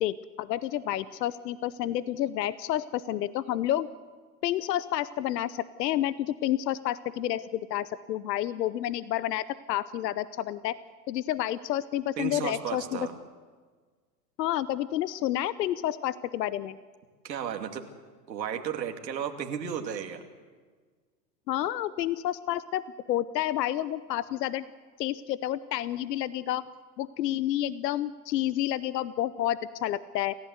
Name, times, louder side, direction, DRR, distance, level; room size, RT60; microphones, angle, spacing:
voice 1, 0.0-3.9 4.4-10.8 11.1-13.1 14.4-16.8 21.5-22.8 23.1-24.6 25.0-26.7 27.0-30.3, left 12 dB, 75° left, 17 dB, 0.9 m, -30 dB
voice 2, 12.2-13.1 17.2-17.8 18.3-20.2, right 8 dB, 85° right, 4 dB, 2.6 m, -34 dB
28.5 x 15.5 x 8.0 m, 1.5 s
hypercardioid pair, 105°, 49 cm